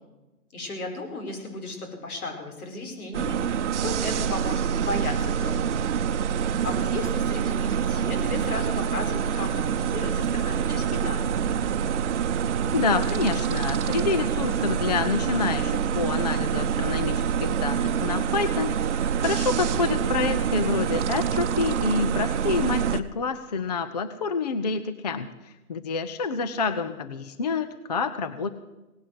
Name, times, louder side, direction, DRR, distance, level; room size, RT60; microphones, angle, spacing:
voice 1, 0.5-5.8 6.6-11.4, left 2 dB, 70° left, 4 dB, 5.0 m, -35 dB
sound 1, 3.1-23.0, right 8 dB, 50° right, 0.8 m, -26 dB
voice 2, 12.7-28.5, left 4 dB, 30° left, 12 dB, 0.5 m, -28 dB
18.0 x 9.9 x 7.8 m, 1.0 s
hypercardioid pair, 155°, 45 cm